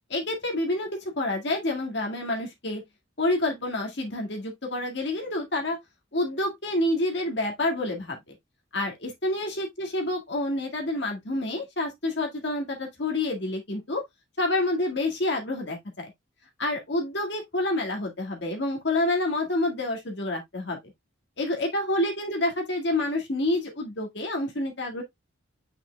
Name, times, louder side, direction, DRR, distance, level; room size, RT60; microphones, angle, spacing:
voice 1, 0.1-0.9 1.2-2.8 3.2-5.8 6.1-8.3 8.7-14.0 14.4-16.1 16.6-20.8 21.4-25.0, left 1 dB, 55° left, 1.9 m, -28 dB
7.7 x 5.7 x 2.2 m
head